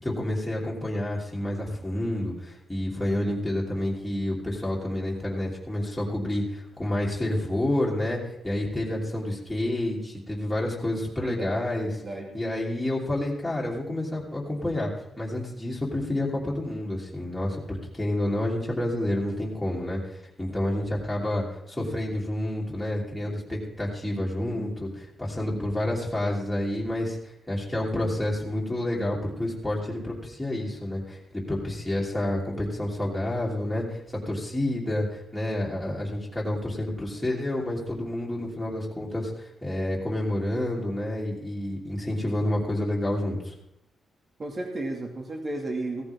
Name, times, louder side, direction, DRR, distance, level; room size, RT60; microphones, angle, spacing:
voice 1, 0.0-11.9 12.3-14.9 15.2-43.5, left 1 dB, 5° left, -5 dB, 3.2 m, -29 dB
voice 2, 11.2-11.7 12.0-12.4 44.4-46.0, right 2 dB, 30° right, 1 dB, 2.5 m, -33 dB
17.0 x 14.0 x 3.7 m, 0.80 s
wide cardioid pair, 140°, 0 cm